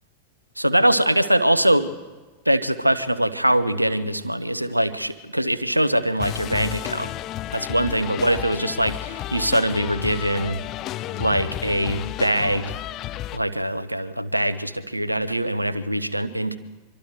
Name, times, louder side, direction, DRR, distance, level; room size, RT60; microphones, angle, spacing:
voice 1, 0.6-1.9 2.5-7.1 7.5-10.6 11.1-12.7 13.3-16.6, right 1 dB, 85° right, 14 dB, 1.0 m, -22 dB
sound 1, 6.2-13.4, left 14 dB, 35° left, 0.7 m, -32 dB
24.5 x 24.5 x 4.8 m, 1.3 s
figure-of-eight pair, 90°, 0 cm